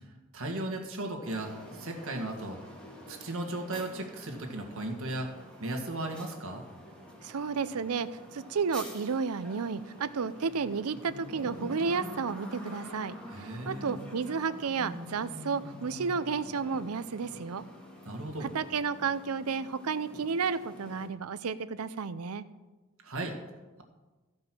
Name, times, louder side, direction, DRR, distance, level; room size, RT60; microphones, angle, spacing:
voice 1, 0.3-2.6 3.1-5.3 5.6-6.6 13.3-14.0 18.1-18.5 23.0-23.3, right 2 dB, 70° right, 3 dB, 1.8 m, -36 dB
sound 1, 1.2-21.1, equal, 5° left, 2.1 m, -47 dB
voice 2, 7.2-8.1 8.3-17.6 18.5-22.4, right 5 dB, 85° right, 14 dB, 0.6 m, -32 dB
15.0 x 5.3 x 6.1 m, 1.2 s
head